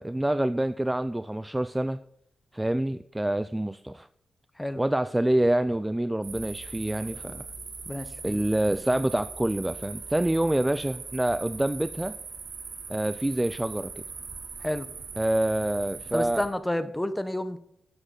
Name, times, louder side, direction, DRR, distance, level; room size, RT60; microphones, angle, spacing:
voice 1, 0.0-2.0 2.5-4.1 4.8-7.5 8.2-12.2 12.9-14.0 15.2-16.4, right 1 dB, 10° right, 13 dB, 0.4 m, -27 dB
sound 1, 6.2-16.5, right 4 dB, 70° right, 2.3 m, -40 dB
voice 2, 7.9-8.4 14.6-14.9 16.1-17.6, left 1 dB, 10° left, 11 dB, 0.9 m, -30 dB
12.5 x 7.8 x 3.8 m, 0.71 s
wide cardioid pair, 115°, 0 cm